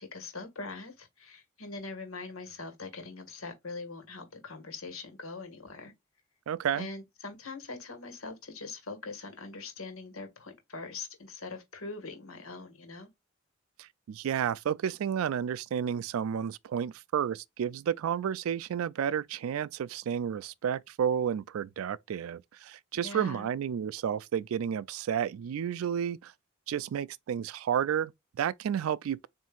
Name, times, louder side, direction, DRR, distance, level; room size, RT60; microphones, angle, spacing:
voice 1, 0.0-5.9 6.7-13.1 22.9-23.5, left 3 dB, 90° left, 1.6 m, -42 dB
voice 2, 6.5-6.9 13.8-26.3 26.7-29.3, right 8 dB, 85° right, 0.3 m, -31 dB
7.3 x 2.7 x 2.4 m
head